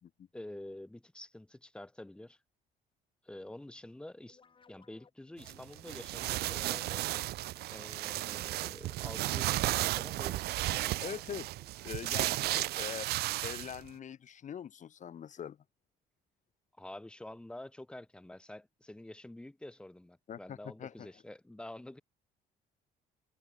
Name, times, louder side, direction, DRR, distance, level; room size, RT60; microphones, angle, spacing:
voice 1, 0.3-2.4 3.2-4.4 4.7-7.2 7.7-10.5 10.8-11.0 16.8-22.0, left 1 dB, 5° left, 0.7 m, -48 dB
sound 1, 4.3-12.4, left 5 dB, 30° left, 5.8 m, -63 dB
sound 2, 5.4-13.9, right 17 dB, 70° right, 0.5 m, -34 dB
voice 2, 11.0-11.5 11.8-13.1 13.4-15.6 20.3-21.1, left 9 dB, 45° left, 1.9 m, -43 dB
cardioid pair, 110°, 17 cm